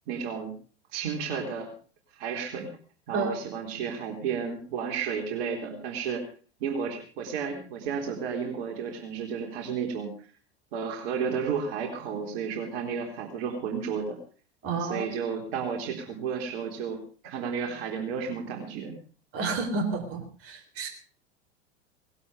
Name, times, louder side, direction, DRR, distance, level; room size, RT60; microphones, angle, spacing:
voice 1, 0.1-0.5 0.9-1.7 2.1-2.7 3.1-6.2 6.6-10.1 10.7-14.2 14.8-19.0, right 6 dB, 60° right, 3 dB, 3.7 m, -32 dB
voice 2, 14.6-15.1 19.3-20.9, right 4 dB, 40° right, 5 dB, 3.9 m, -30 dB
19.0 x 12.0 x 4.9 m, 0.39 s
hypercardioid pair, 90°, 34 cm